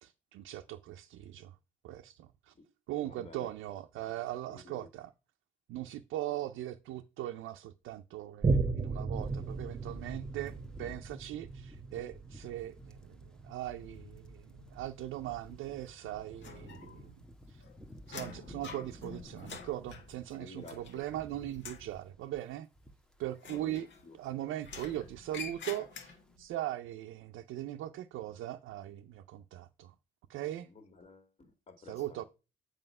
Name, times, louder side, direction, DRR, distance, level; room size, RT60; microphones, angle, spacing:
voice 1, 0.0-1.5 1.8-2.5 2.9-5.1 5.7-17.1 17.5-17.6 18.1-22.7 23.2-23.9 24.1-29.9 30.3-30.7 31.8-32.2, right 13 dB, 85° right, 0.5 m, -40 dB
voice 2, 3.0-3.5 4.5-4.9 20.3-21.0 23.5-24.2 30.7-32.2, left 3 dB, 35° left, 1.9 m, -52 dB
Boom, 8.4-15.3 15.9-16.0, right 4 dB, 30° right, 0.9 m, -36 dB
sound 1, 9.2-20.2 20.5-23.9 24.2-24.5 24.8-25.6 25.8-26.1, equal, 5° left, 1.0 m, -54 dB
sound 2, 16.4-17.2 17.5-21.2 21.5-21.9 23.4-24.2 24.6-26.4, left 5 dB, 70° left, 1.7 m, -47 dB
7.8 x 5.1 x 5.3 m
cardioid pair, 90°, 20 cm